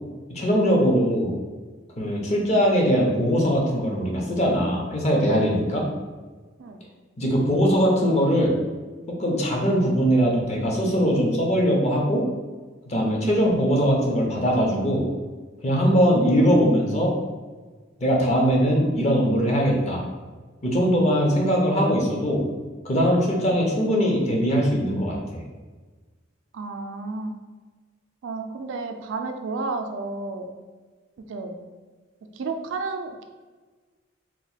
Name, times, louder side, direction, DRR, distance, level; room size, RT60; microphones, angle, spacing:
voice 1, 0.3-1.3 2.0-5.9 7.2-8.5 9.1-12.2 12.9-15.0 15.6-17.1 18.0-20.0 20.6-22.4 22.8-25.4, equal, 35° left, 0 dB, 0.6 m, -21 dB
voice 2, 26.5-27.3 28.2-30.5 31.3-31.6 32.3-33.2, right 3 dB, 70° right, 5 dB, 0.3 m, -31 dB
2.9 x 2.1 x 4.0 m, 1.4 s
head